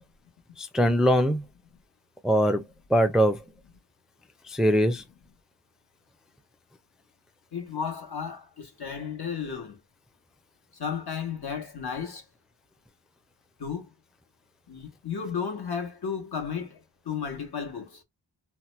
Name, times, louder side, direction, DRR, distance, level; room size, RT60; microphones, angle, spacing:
voice 1, 0.6-1.4 2.2-2.6 2.9-3.4 4.5-5.0, equal, ahead, 0.4 m, -22 dB
voice 2, 7.5-9.8 10.8-12.2 13.6-13.9 14.7-16.8 17.1-18.0, left 6 dB, 65° left, 1.0 m, -33 dB
2.8 x 2.1 x 3.0 m
wide cardioid pair, 80°, 41 cm